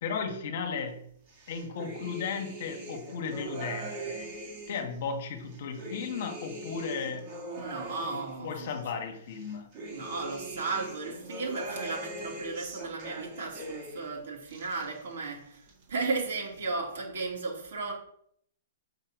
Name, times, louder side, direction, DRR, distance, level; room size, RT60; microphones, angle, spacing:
voice 1, 0.0-1.1 1.5-4.3 4.7-7.3 8.0-9.7, left 5 dB, 45° left, 1.3 m, -35 dB
sound 1, 1.3-4.9 5.4-8.8 9.3-14.1 14.4-15.3 15.6-16.3, right 1 dB, 25° right, 1.8 m, -41 dB
voice 2, 7.6-8.7 9.9-17.9, right 3 dB, 65° right, 3.1 m, -35 dB
7.7 x 5.3 x 5.2 m
hypercardioid pair, 170°, 0 cm